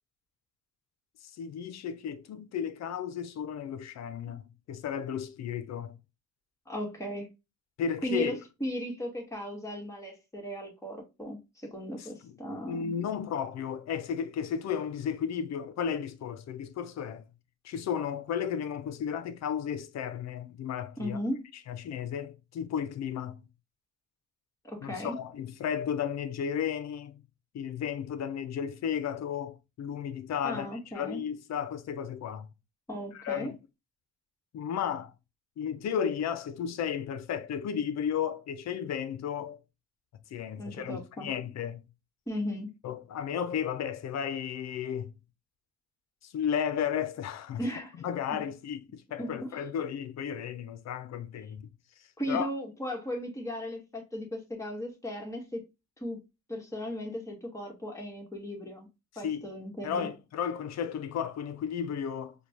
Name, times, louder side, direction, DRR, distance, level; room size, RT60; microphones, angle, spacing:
voice 1, 1.2-6.0 7.8-8.4 12.0-17.3 17.6-21.2 21.7-23.4 24.8-27.2 27.5-30.7 30.9-32.5 33.1-33.6 34.5-35.1 35.6-39.6 40.3-41.8 42.8-45.1 46.2-47.6 48.0-51.7 52.3-52.5 59.2-59.4 59.8-62.3, left 8 dB, 60° left, 0.6 m, -34 dB
voice 2, 6.7-7.3 8.0-8.3 8.6-12.9 21.0-21.5 24.6-25.2 30.4-31.2 32.9-33.5 40.6-41.3 42.3-42.7 47.6-48.4 49.2-49.6 52.2-55.6 56.0-56.2 56.5-58.9 59.1-60.1, equal, 10° left, 1.5 m, -36 dB
5.0 x 2.3 x 2.9 m
cardioid pair, 90°, 30 cm